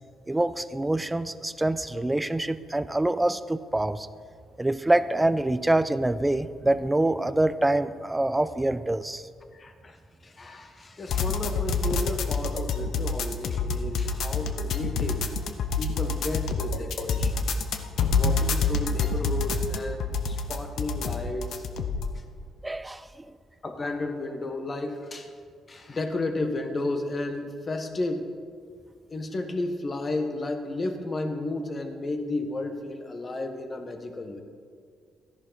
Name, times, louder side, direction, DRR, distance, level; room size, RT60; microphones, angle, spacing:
voice 1, 0.3-4.1 4.6-9.3 22.6-23.2, right 1 dB, 10° right, 13 dB, 0.5 m, -25 dB
voice 2, 9.5-15.3 15.8-17.6 18.1-21.6 22.1-22.2 23.6-25.3 25.7-28.3 29.1-34.4, left 2 dB, 35° left, 6 dB, 1.3 m, -33 dB
sound 1, 11.1-22.1, left 4 dB, 70° left, 0.8 m, -27 dB
13.5 x 10.5 x 4.0 m, 2.1 s
cardioid pair, 90°, 0 cm